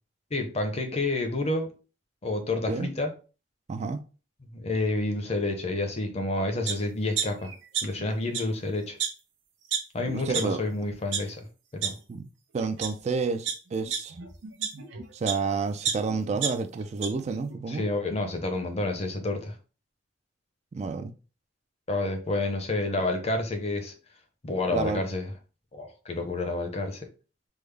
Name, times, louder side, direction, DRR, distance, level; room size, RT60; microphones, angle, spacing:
voice 1, 0.3-1.7 2.2-3.1 4.5-7.5 7.8-9.0 9.9-11.5 11.7-11.9 17.7-19.5 21.9-23.9 24.4-25.3 25.7-27.1, left 2 dB, 35° left, 0.6 m, -29 dB
voice 2, 3.7-4.0 10.1-10.6 12.1-12.3 12.5-14.2 15.1-17.9 20.7-21.1 24.7-25.0, right 4 dB, 40° right, 0.3 m, -30 dB
sound 1, 6.7-6.8 7.2-8.1 8.3-8.4 9.0-9.1 9.7-9.8 10.3-10.4 10.9-11.2 11.8-11.9 12.6-12.9 13.5-15.4 15.8-17.1 17.5-17.6, right 7 dB, 85° right, 0.7 m, -30 dB
3.5 x 2.0 x 3.2 m
head